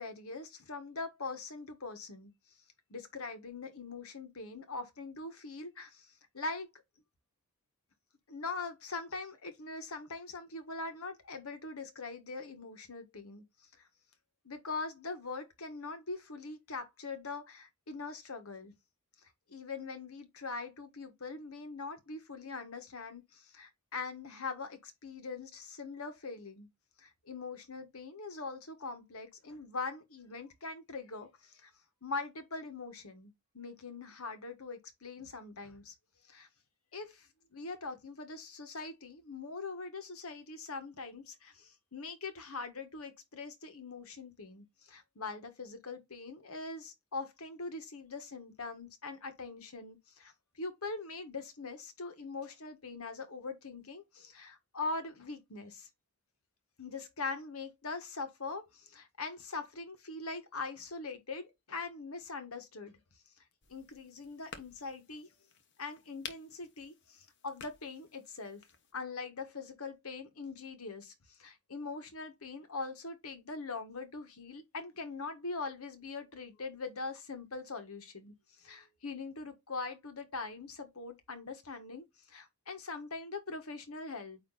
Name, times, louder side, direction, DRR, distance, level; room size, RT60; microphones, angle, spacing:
voice 1, 0.0-2.3 2.9-6.7 8.3-13.4 14.4-18.7 19.5-26.7 27.0-31.7 32.0-35.9 36.3-36.5 36.9-55.9 56.8-63.0 63.7-65.3 65.8-68.6 68.9-71.1 71.4-84.4, left 3 dB, 70° left, 1.6 m, -42 dB
sound 1, 63.6-68.9, left 6 dB, 55° left, 1.2 m, -52 dB
9.0 x 3.2 x 4.0 m
head